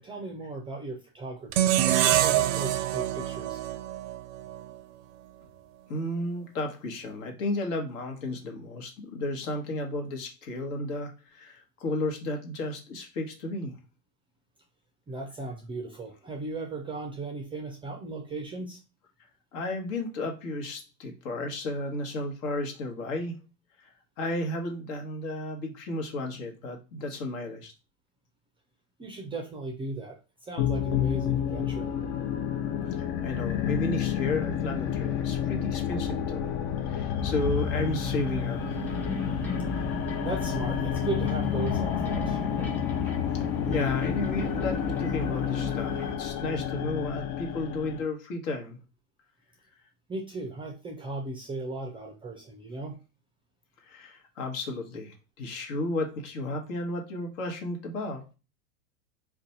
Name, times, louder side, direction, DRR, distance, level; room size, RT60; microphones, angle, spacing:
voice 1, 0.0-3.6 15.1-18.8 29.0-31.9 40.2-42.5 50.1-53.0, right 3 dB, 15° right, 2 dB, 0.4 m, -37 dB
sound 1, 1.5-4.7, right 12 dB, 65° right, 0.5 m, -25 dB
voice 2, 5.9-13.7 19.5-23.4 23.8-27.7 33.2-36.5 36.8-38.9 43.3-48.8 53.8-58.3, left 2 dB, 60° left, 3 dB, 1.1 m, -33 dB
sound 2, 30.6-48.0, left 10 dB, 45° left, 0.5 m, -30 dB
sound 3, 37.2-46.2, right 2 dB, 5° left, 0.9 m, -37 dB
2.5 x 2.3 x 4.0 m, 0.30 s
hypercardioid pair, 95°, 42 cm